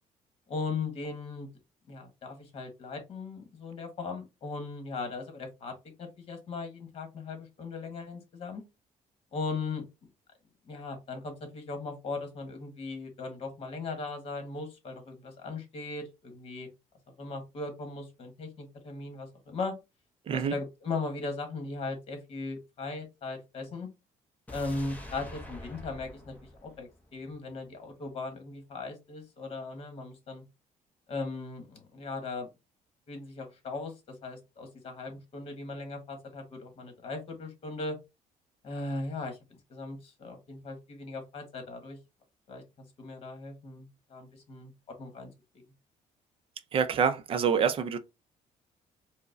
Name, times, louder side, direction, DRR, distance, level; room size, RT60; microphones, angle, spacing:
voice 1, 0.5-1.5 1.9-8.6 9.3-9.8 10.6-16.7 17.2-19.7 20.3-23.9 24.5-26.3 26.6-30.4 31.1-32.5 33.1-38.0 38.6-42.0 42.5-45.3, left 3 dB, 40° left, 1.1 m, -38 dB
sound 1, 24.5-27.6 27.9-28.0, left 1 dB, 10° left, 0.6 m, -46 dB
voice 2, 46.7-48.0, right 7 dB, 40° right, 0.4 m, -26 dB
4.6 x 2.1 x 2.5 m
cardioid pair, 160°, 14 cm